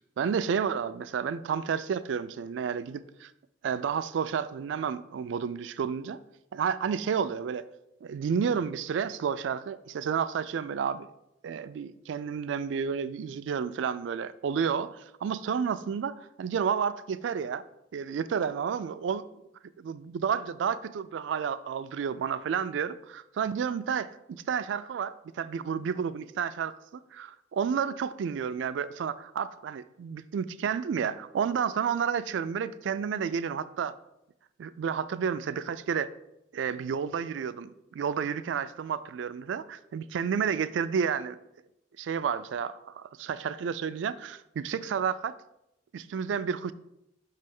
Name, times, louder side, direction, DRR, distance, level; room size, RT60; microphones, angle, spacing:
voice 1, 0.2-3.3 3.6-6.2 6.5-7.7 8.0-11.1 11.4-17.6 17.9-19.2 19.8-33.9 34.6-36.1 36.5-41.4 42.0-45.4 45.9-46.7, right 7 dB, 80° right, 14 dB, 0.3 m, -31 dB
5.4 x 3.3 x 5.3 m, 0.85 s
head